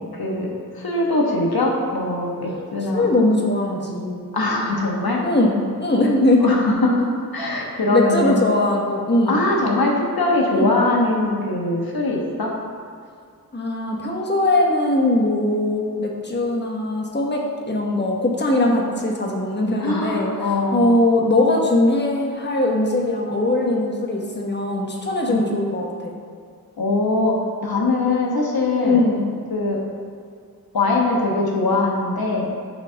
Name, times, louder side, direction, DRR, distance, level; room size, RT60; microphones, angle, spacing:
voice 1, 0.8-3.1 4.3-5.2 6.4-6.9 7.3-8.4 9.3-12.5 19.8-20.8 25.3-25.4 26.8-27.4 27.6-29.0 29.5-29.8 30.7-32.5, left 2 dB, 80° left, -2 dB, 1.3 m, -21 dB
voice 2, 2.9-4.2 5.2-6.6 7.9-9.5 10.5-10.8 13.5-20.3 20.7-26.1 28.8-29.3, left 2 dB, 30° left, -1 dB, 1.2 m, -20 dB
8.7 x 4.2 x 5.7 m, 2.3 s
wide cardioid pair, 70°, 36 cm